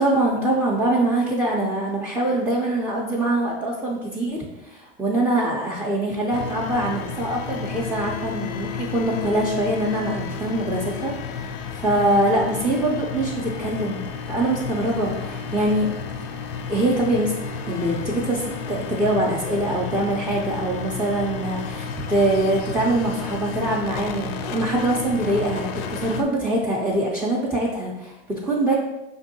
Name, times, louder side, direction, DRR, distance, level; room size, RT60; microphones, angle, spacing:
voice 1, 0.0-15.9 16.2-16.3 16.7-17.3 17.7-28.8, right 1 dB, 5° right, -5 dB, 0.3 m, -23 dB
sound 1, 6.3-26.2, left 5 dB, 65° left, 0.5 m, -32 dB
5.0 x 2.6 x 2.6 m, 0.99 s
supercardioid pair, 125°, 31 cm